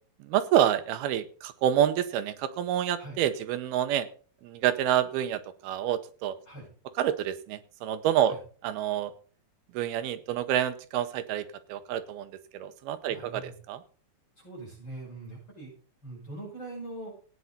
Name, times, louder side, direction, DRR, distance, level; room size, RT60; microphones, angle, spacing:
voice 1, 0.2-4.1 4.4-6.4 7.0-8.4 8.6-9.1 9.7-13.8, right 10 dB, 80° right, 11 dB, 2.8 m, -28 dB
voice 2, 13.1-13.5 14.4-15.7 16.0-17.1, right 2 dB, 30° left, -3 dB, 6.2 m, -42 dB
15.5 x 9.2 x 4.0 m, 0.42 s
omnidirectional pair, 4.5 m